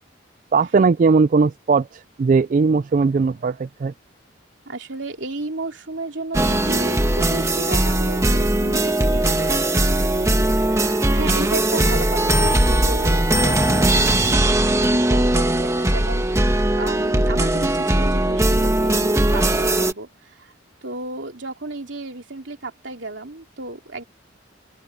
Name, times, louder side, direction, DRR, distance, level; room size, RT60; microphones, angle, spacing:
voice 1, 0.5-3.9, right 4 dB, 40° right, 0.3 m, -18 dB
voice 2, 4.7-20.5 20.8-24.0, right 2 dB, 70° right, 2.9 m, -33 dB
sound 1, 6.3-19.9, right 1 dB, 15° right, 1.5 m, -19 dB
head